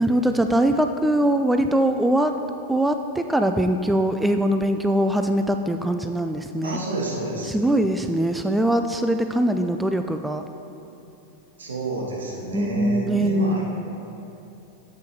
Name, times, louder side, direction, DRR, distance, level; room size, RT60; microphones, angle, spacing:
voice 1, 0.0-2.4 2.7-6.8 7.4-10.5 12.5-13.7, right 1 dB, 5° right, 6 dB, 0.4 m, -22 dB
voice 2, 6.6-7.5 11.6-13.7, right 2 dB, 70° right, -3 dB, 2.3 m, -29 dB
11.5 x 7.8 x 4.7 m, 3.0 s
figure-of-eight pair, 90°, 0 cm